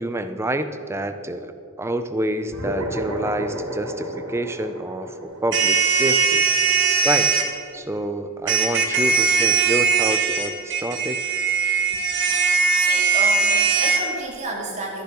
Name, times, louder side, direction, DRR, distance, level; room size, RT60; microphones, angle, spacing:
voice 1, 0.0-1.5 1.8-6.4 7.0-7.3 7.7-11.2, right 1 dB, 10° right, 9 dB, 0.5 m, -27 dB
sound 1, 2.5-7.3, equal, 70° right, 2.6 m, -33 dB
sound 2, 5.5-7.5 8.5-14.0, right 5 dB, 55° right, 1.5 m, -20 dB
voice 2, 12.8-15.0, right 2 dB, 30° right, -1 dB, 2.2 m, -31 dB
12.0 x 10.5 x 6.1 m, 2.6 s
head